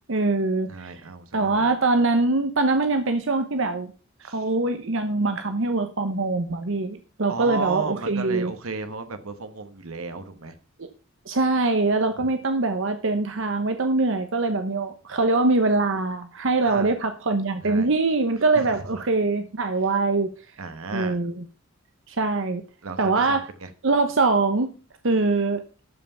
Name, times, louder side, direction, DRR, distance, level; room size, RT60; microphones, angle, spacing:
voice 1, 0.1-0.9 1.3-3.9 4.2-8.5 10.8-10.9 11.3-20.3 20.9-21.3 22.1-22.6 23.0-23.5 23.8-24.7 25.0-25.6, right 3 dB, 65° right, 0.9 m, -23 dB
voice 2, 0.7-1.7 4.2-4.4 7.3-10.5 16.6-16.9 17.6-17.9 18.5-18.7 20.6-21.2 22.8-23.7, right 4 dB, 90° right, 1.2 m, -34 dB
12.5 x 5.6 x 5.6 m
head